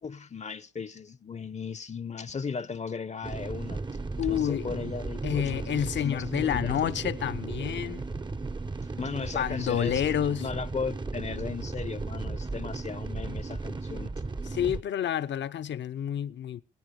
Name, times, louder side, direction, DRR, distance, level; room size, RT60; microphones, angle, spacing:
voice 1, 0.0-3.8 4.3-6.8 9.0-10.1 10.4-14.1, left 5 dB, 35° left, 0.7 m, -36 dB
sound 1, 3.2-14.8, right 3 dB, 20° right, 0.7 m, -35 dB
voice 2, 4.2-4.7 5.2-8.0 9.3-10.5 14.4-16.6, left 10 dB, 60° left, 0.8 m, -29 dB
20.5 x 9.0 x 5.3 m
hypercardioid pair, 50°, 21 cm